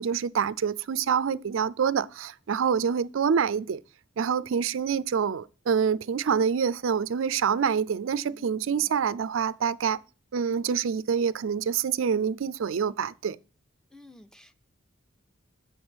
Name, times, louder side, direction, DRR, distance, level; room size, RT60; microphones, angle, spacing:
voice 1, 0.0-3.8 4.2-10.0 10.3-13.4, right 7 dB, 75° right, 0.4 m, -26 dB
voice 2, 8.3-9.0 13.9-14.6, left 1 dB, 5° left, 0.6 m, -53 dB
8.6 x 6.2 x 5.1 m
head